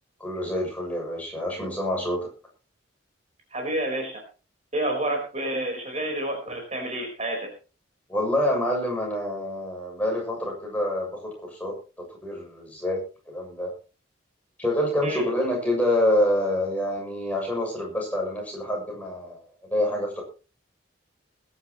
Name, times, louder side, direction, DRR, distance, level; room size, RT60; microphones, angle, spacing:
voice 1, 0.2-2.3 8.1-11.8 12.2-13.0 13.3-13.7 14.6-19.4 19.7-20.2, left 1 dB, 5° left, -1 dB, 7.3 m, -26 dB
voice 2, 3.5-4.2 4.7-7.5 15.0-15.2, right 1 dB, 35° right, 3 dB, 4.6 m, -29 dB
21.0 x 11.5 x 3.1 m, 0.34 s
head